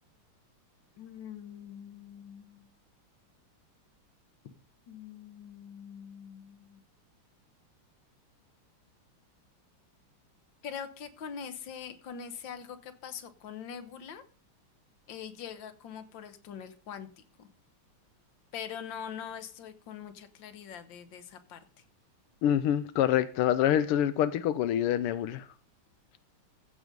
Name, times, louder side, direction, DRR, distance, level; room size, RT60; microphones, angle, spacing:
voice 1, 1.0-2.7 4.9-6.8 10.6-14.2 15.1-17.1 17.4-17.5 18.5-21.6, left 8 dB, 65° left, 1.8 m, -43 dB
voice 2, 22.4-25.5, left 10 dB, 85° left, 1.6 m, -26 dB
15.5 x 6.5 x 5.3 m
omnidirectional pair, 2.4 m